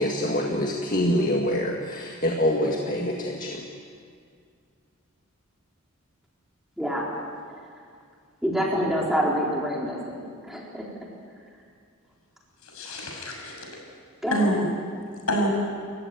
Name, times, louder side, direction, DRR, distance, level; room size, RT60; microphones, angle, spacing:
voice 1, 0.0-3.7, left 1 dB, 40° left, 1 dB, 1.8 m, -25 dB
voice 2, 6.8-7.2 8.4-10.9 14.2-14.6, equal, ahead, -3 dB, 3.8 m, -27 dB
voice 3, 12.6-13.7 14.3-14.7 15.3-15.5, equal, 80° left, 1 dB, 6.8 m, -26 dB
30.0 x 15.0 x 9.5 m, 2.2 s
head